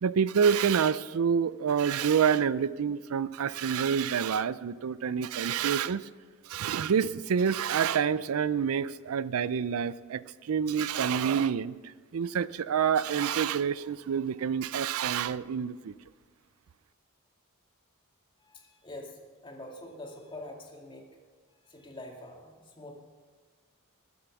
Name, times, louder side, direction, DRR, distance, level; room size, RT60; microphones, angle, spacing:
voice 1, 0.0-6.1 6.5-15.9, right 7 dB, 75° right, 17 dB, 0.4 m, -27 dB
voice 2, 18.4-21.1 21.6-22.9, left 1 dB, 25° left, 0 dB, 2.3 m, -45 dB
20.5 x 7.7 x 6.0 m, 1.5 s
head